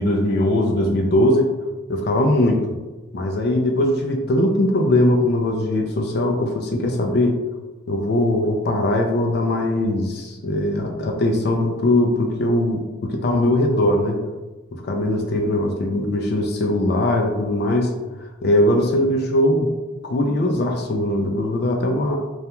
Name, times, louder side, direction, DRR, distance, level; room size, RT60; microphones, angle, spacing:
voice 1, 0.0-1.5 1.9-2.6 3.1-7.4 7.9-14.2 14.7-17.9 18.4-19.7 20.0-22.2, left 1 dB, 55° left, 2 dB, 0.3 m, -20 dB
2.3 x 2.1 x 2.8 m, 1.2 s
head